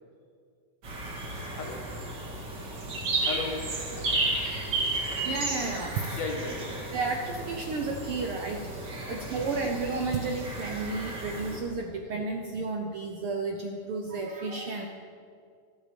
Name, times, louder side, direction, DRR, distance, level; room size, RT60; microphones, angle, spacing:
sound 1, 0.8-11.6, right 2 dB, 40° right, 2.5 m, -33 dB
voice 1, 3.2-3.6 6.2-6.8 9.0-9.5, left 4 dB, 60° left, 1 dB, 2.9 m, -36 dB
voice 2, 5.3-5.9 6.9-8.6 9.1-14.9, right 3 dB, 65° right, 2 dB, 1.5 m, -32 dB
25.5 x 8.5 x 5.2 m, 2.2 s
omnidirectional pair, 3.5 m